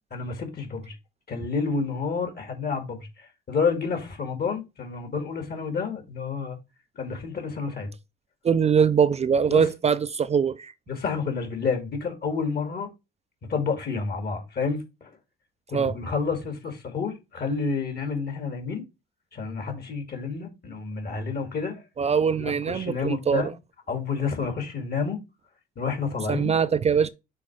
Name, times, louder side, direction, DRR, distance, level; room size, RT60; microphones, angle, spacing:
voice 1, 0.1-1.0 1.3-6.6 7.0-7.9 9.5-9.7 10.9-12.9 13.5-15.1 15.7-18.9 19.3-21.8 22.4-23.5 23.9-25.2 25.8-26.5, left 5 dB, 55° left, 2.0 m, -29 dB
voice 2, 8.4-10.7 15.7-16.0 22.0-23.5 26.3-27.1, right 6 dB, 35° right, 0.4 m, -22 dB
6.2 x 3.7 x 4.7 m
cardioid pair, 90°, 20 cm